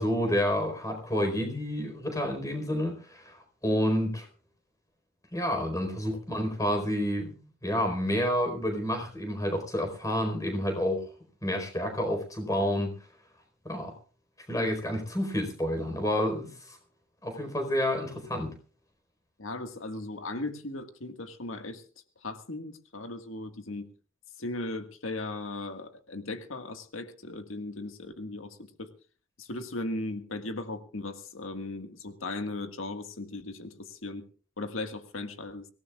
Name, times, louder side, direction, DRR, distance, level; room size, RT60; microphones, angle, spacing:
voice 1, 0.0-4.3 5.3-11.1 11.4-12.9 13.6-13.9 14.5-16.8 17.2-18.5, equal, 15° left, 6 dB, 4.5 m, -29 dB
voice 2, 19.4-21.9 22.2-23.9 24.4-28.9 29.4-34.3 34.6-35.7, left 2 dB, 85° left, 7 dB, 1.8 m, -37 dB
25.0 x 17.5 x 2.4 m, 0.38 s
head